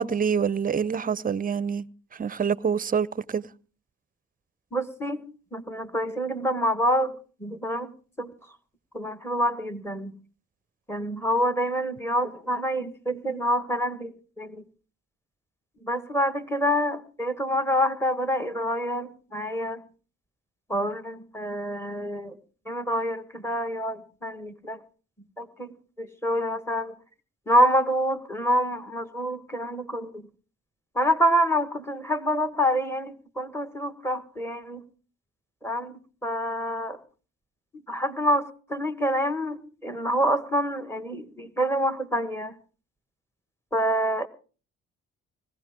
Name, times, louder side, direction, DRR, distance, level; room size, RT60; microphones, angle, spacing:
voice 1, 0.0-1.8 2.2-3.4, right 6 dB, 30° right, 0.7 m, -26 dB
voice 2, 4.7-5.2 5.5-7.9 8.2-8.3 8.9-10.1 10.9-14.6 15.8-19.8 20.7-22.4 22.6-24.8 25.4-26.9 27.5-30.3 30.9-34.8 35.6-37.0 37.9-42.5 43.7-44.3, equal, 10° left, 1.6 m, -27 dB
20.5 x 15.5 x 3.7 m
cardioid pair, 90°, 30 cm